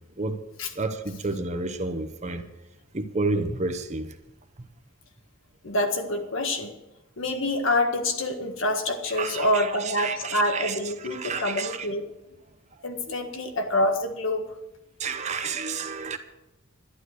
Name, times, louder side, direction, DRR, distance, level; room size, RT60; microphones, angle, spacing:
voice 1, 0.7-2.4 2.9-4.2 4.6-4.7 9.1-10.8 11.0-11.9 15.0-16.2, right 3 dB, 35° right, 0.9 m, -30 dB
voice 2, 5.6-6.7 7.2-12.1 12.8-14.5, left 1 dB, 65° left, 1.6 m, -26 dB
11.5 x 11.0 x 6.4 m
head